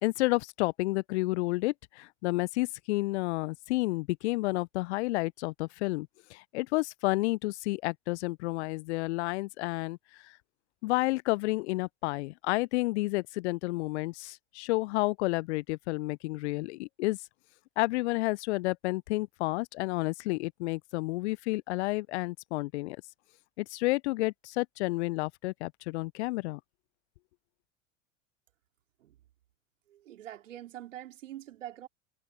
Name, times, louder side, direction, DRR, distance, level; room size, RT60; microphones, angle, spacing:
voice 1, 0.0-10.0 10.2-10.3 10.8-17.2 17.8-23.0 23.6-26.6, left 22 dB, 60° left, 0.5 m, -30 dB
voice 2, 29.9-31.9, right 13 dB, 75° right, 2.8 m, -44 dB
hypercardioid pair, 80°, 38 cm